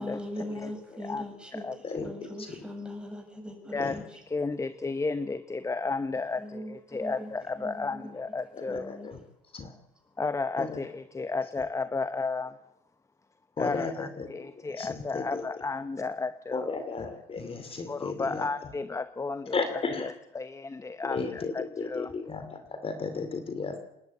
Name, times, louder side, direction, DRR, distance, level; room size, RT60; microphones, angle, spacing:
voice 1, 0.0-4.2 6.4-8.2 8.7-9.1, left 1 dB, 5° right, 2 dB, 6.8 m, -40 dB
voice 2, 4.3-8.9 10.2-12.6 13.6-16.8 17.9-19.6 20.0-22.1, left 3 dB, 20° left, 12 dB, 0.9 m, -33 dB
voice 3, 8.5-9.2 9.5-9.7 10.6-10.8 13.6-15.5 16.5-18.7 19.5-20.1 21.0-23.8, left 4 dB, 35° left, 8 dB, 2.6 m, -34 dB
27.0 x 11.0 x 9.5 m, 0.82 s
cardioid pair, 110°, 17 cm